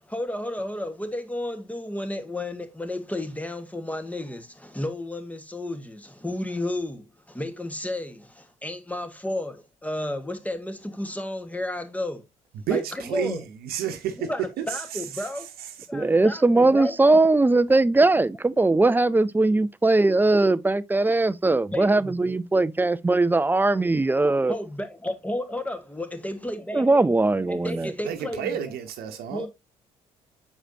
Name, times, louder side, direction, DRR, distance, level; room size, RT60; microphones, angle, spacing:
voice 1, 0.1-12.2 12.7-13.5 14.2-15.5 15.9-17.0 21.7-22.3 24.5-27.1 27.5-28.7 29.3-29.5, left 1 dB, 10° left, 1.5 m, -32 dB
voice 2, 12.7-13.4 13.7-14.2 28.0-29.5, right 9 dB, 75° right, 0.9 m, -30 dB
voice 3, 15.9-24.5 26.7-27.9, right 2 dB, 10° right, 0.5 m, -20 dB
7.3 x 4.9 x 2.7 m
supercardioid pair, 60°, 16 cm